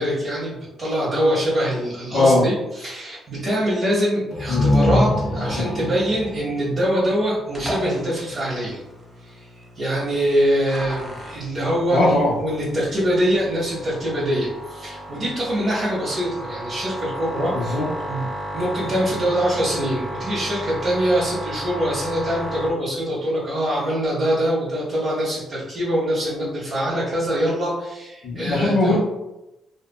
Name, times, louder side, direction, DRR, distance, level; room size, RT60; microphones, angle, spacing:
voice 1, 0.0-8.8 9.2-12.0 12.4-17.8 18.1-29.0, equal, 50° right, -8 dB, 0.9 m, -24 dB
voice 2, 2.1-2.5 4.5-4.6 5.5-5.6 11.9-12.3 17.5-17.9 28.2-29.0, left 2 dB, 70° left, -5 dB, 0.9 m, -19 dB
sound 1, 4.3-8.0, left 1 dB, 50° left, 0.6 m, -24 dB
sound 2, 7.5-22.7, right 1 dB, 10° right, 0.9 m, -34 dB
2.7 x 2.5 x 2.2 m, 0.97 s
cardioid pair, 90°, 0 cm